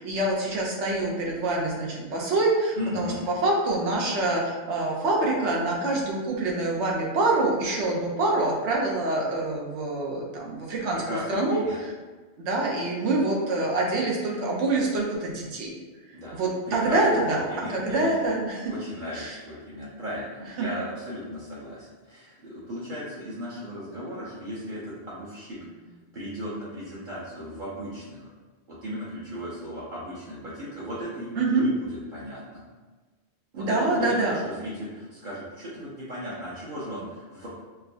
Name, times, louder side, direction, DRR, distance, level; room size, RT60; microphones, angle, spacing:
voice 1, 0.0-11.0 11.3-11.6 12.4-15.7 16.3-18.7 19.1-19.3 20.6-20.7 31.4-31.6 33.5-34.4, right 2 dB, 90° right, -2 dB, 1.1 m, -26 dB
voice 2, 2.8-3.3 10.9-11.8 16.1-16.4 16.7-18.3 18.7-25.6 26.1-28.3 28.7-32.6 33.5-37.5, equal, 50° right, -9 dB, 0.8 m, -36 dB
4.4 x 2.1 x 2.7 m, 1.3 s
omnidirectional pair, 1.1 m